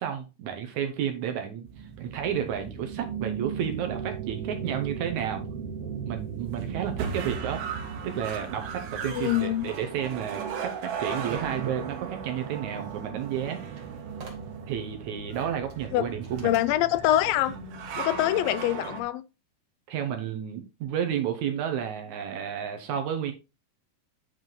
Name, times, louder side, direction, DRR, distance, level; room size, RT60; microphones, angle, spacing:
voice 1, 0.0-5.4 6.1-7.6 8.0-13.7 14.7-16.5 19.9-23.3, right 9 dB, 70° right, 2.0 m, -31 dB
sound 1, 1.7-19.0, right 7 dB, 85° right, 3.0 m, -36 dB
voice 2, 9.0-9.7 15.9-16.1 16.4-17.6 18.0-19.2, left 14 dB, 85° left, 2.3 m, -25 dB
sound 2, 10.9-11.7 13.1-13.2 13.4-14.8 15.3-15.8 16.2-16.7, right 3 dB, 40° right, 1.6 m, -49 dB
9.2 x 4.8 x 3.9 m
omnidirectional pair, 4.1 m